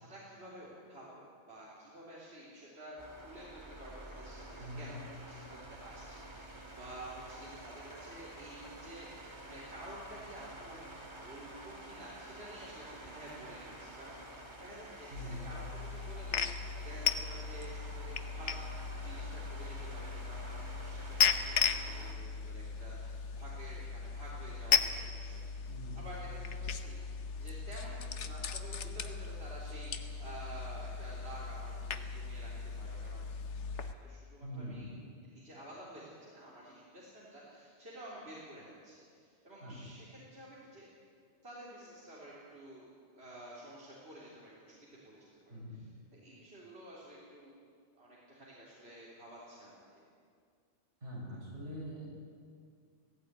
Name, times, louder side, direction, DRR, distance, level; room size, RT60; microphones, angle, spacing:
voice 1, 0.0-3.0 3.2-18.5 19.0-25.4 25.9-32.5 32.8-33.3 33.7-34.9 35.2-40.9 41.4-42.9 43.1-47.5 47.9-50.1, right 1 dB, 60° right, -7 dB, 3.8 m, -51 dB
sound 1, 3.0-22.1, right 1 dB, 25° right, 1.9 m, -50 dB
voice 2, 4.6-4.9 15.1-15.5 25.7-26.0 34.4-35.0 39.6-39.8 45.5-45.8 51.0-52.1, equal, 75° right, -3 dB, 5.7 m, -43 dB
sound 2, 15.1-33.9, left 6 dB, 70° left, 1.3 m, -36 dB
17.0 x 16.5 x 9.3 m, 2.2 s
omnidirectional pair, 1.2 m